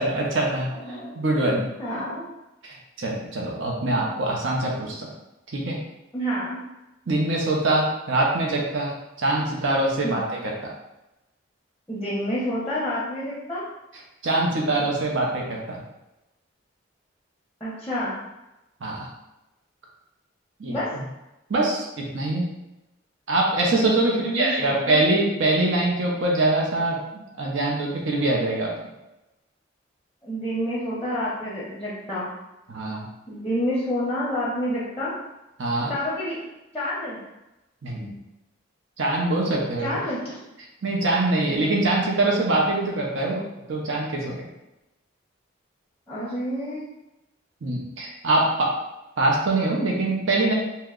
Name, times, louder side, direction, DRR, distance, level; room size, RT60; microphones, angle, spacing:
voice 1, 0.0-0.7 1.1-1.6 2.6-5.1 5.5-5.8 7.1-8.9 9.2-10.7 14.2-15.8 18.8-19.1 20.6-21.0 21.5-22.5 23.3-28.7 32.7-33.1 35.6-35.9 37.8-38.1 39.0-39.9 40.8-44.5 47.6-48.7 49.2-50.5, right 2 dB, 70° right, -2 dB, 0.6 m, -24 dB
voice 2, 0.7-1.2 1.8-2.2 6.1-6.6 10.0-10.2 11.9-13.7 17.6-18.1 20.7-20.9 24.0-25.0 30.2-32.3 33.3-35.1 35.9-36.4 36.7-37.2 39.8-40.4 46.1-46.8, equal, 5° left, -7 dB, 0.6 m, -28 dB
2.8 x 2.1 x 3.6 m, 0.96 s
head